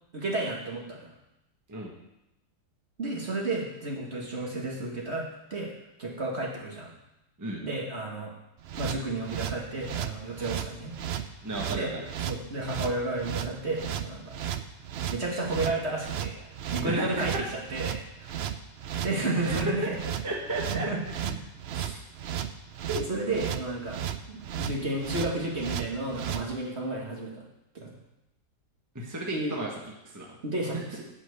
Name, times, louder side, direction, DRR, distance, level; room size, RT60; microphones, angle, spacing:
voice 1, 0.1-1.1 3.0-5.7 6.0-6.9 7.6-8.3 8.8-10.9 11.7-11.9 12.3-14.5 15.1-18.4 19.0-20.0 20.7-21.3 21.7-22.0 22.9-24.0 24.3-27.4 27.8-27.9 29.3-29.6 30.4-31.0, right 2 dB, 45° right, -1 dB, 1.8 m, -32 dB
sound 1, 8.6-26.4, right 10 dB, 70° right, 0.6 m, -34 dB
voice 2, 11.4-12.1 16.8-17.4 18.9-19.1 19.5-19.7 20.2-20.9 28.9-29.7 30.1-30.3 30.7-30.8, right 1 dB, 10° right, -1 dB, 1.3 m, -33 dB
8.2 x 5.9 x 8.0 m, 0.89 s
omnidirectional pair, 1.7 m